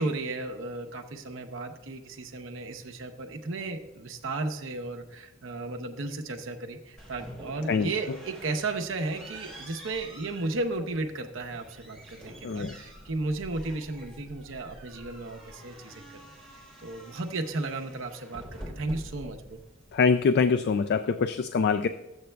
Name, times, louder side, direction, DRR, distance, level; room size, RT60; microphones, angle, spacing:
voice 1, 0.0-16.3 16.8-19.6, right 2 dB, 65° right, 4 dB, 0.7 m, -34 dB
sound 1, 7.0-21.0, right 1 dB, 5° left, 3.5 m, -47 dB
voice 2, 12.4-12.7 19.9-21.9, left 5 dB, 55° left, 10 dB, 0.3 m, -24 dB
14.0 x 8.0 x 2.2 m, 1.0 s
head